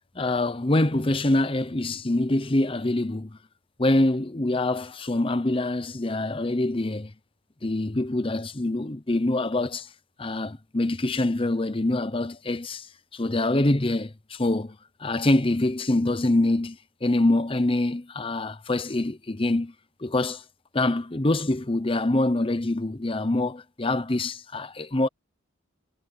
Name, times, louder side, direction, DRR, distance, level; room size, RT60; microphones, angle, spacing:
voice 1, 0.1-3.4 3.8-7.1 7.6-9.9 10.2-19.7 20.0-20.4 20.7-25.1, left 2 dB, 25° left, 0.9 m, -25 dB
head